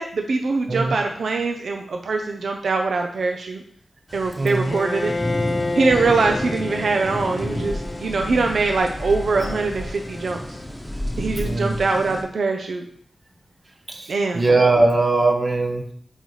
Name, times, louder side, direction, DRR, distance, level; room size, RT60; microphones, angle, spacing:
voice 1, 0.0-3.6 4.1-5.1 5.7-10.4 11.2-12.8 14.1-14.4, right 3 dB, 80° right, 3 dB, 0.5 m, -23 dB
sound 1, 4.1-12.2, equal, 5° left, 1.0 m, -31 dB
voice 2, 4.4-4.8 11.4-11.8 13.9-15.8, right 2 dB, 45° right, 3 dB, 1.0 m, -20 dB
Bowed string instrument, 4.7-10.7, left 3 dB, 45° left, 0.5 m, -31 dB
9.0 x 3.9 x 3.2 m, 0.62 s
wide cardioid pair, 80°, 0 cm